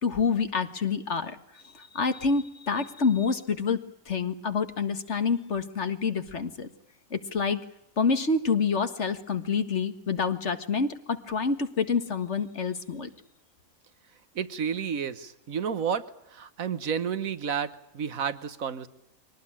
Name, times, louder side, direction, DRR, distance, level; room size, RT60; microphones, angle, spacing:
voice 1, 0.0-6.7 7.1-7.6 8.0-13.1, left 5 dB, 55° left, 9 dB, 2.0 m, -27 dB
voice 2, 14.3-16.0 16.3-18.9, right 7 dB, 80° right, 14 dB, 1.6 m, -31 dB
24.0 x 19.0 x 10.0 m, 0.81 s
omnidirectional pair, 1.4 m